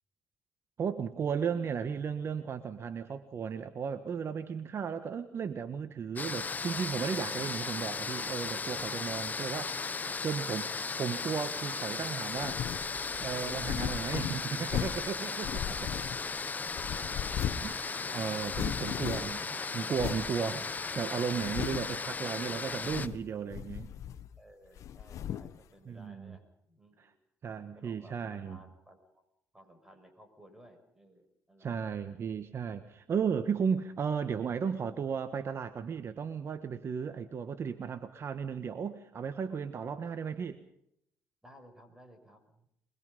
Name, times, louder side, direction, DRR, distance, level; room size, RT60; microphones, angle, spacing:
voice 1, 0.8-12.6 13.2-15.5 17.6-19.4 19.7-23.9 25.9-26.4 27.4-28.6 31.6-40.6, right 6 dB, 50° right, 10 dB, 1.4 m, -35 dB
sound 1, 6.2-23.1, left 4 dB, 30° left, 0.9 m, -36 dB
voice 2, 7.3-7.7 15.3-20.0 24.4-27.2 27.7-29.2 29.5-31.7 39.5-40.3 41.4-42.7, equal, 10° right, 6 dB, 6.4 m, -57 dB
sound 2, 8.6-8.7 9.1-15.5, right 6 dB, 80° right, 3.2 m, -60 dB
sound 3, 12.4-12.9 13.4-15.1 15.4-16.4 16.7-17.8 18.0-18.1 18.4-19.4 20.0-20.3 20.8-20.9 21.3-22.0 22.7-23.3 23.5-24.4 24.8-25.6, left 10 dB, 65° left, 1.0 m, -37 dB
23.5 x 21.5 x 5.5 m, 0.75 s
supercardioid pair, 80°, 6 cm